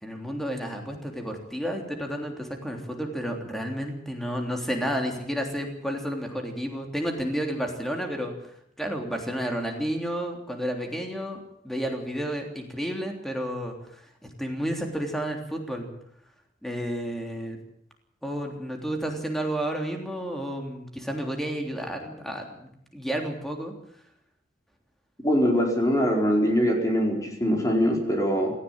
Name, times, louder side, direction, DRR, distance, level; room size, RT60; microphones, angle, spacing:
voice 1, 0.0-8.3 8.8-14.0 14.4-15.9 16.6-17.6 18.2-23.7, equal, ahead, 2 dB, 3.4 m, -31 dB
voice 2, 25.2-28.5, equal, 20° left, 1 dB, 4.7 m, -23 dB
18.5 x 15.5 x 9.0 m, 0.72 s
head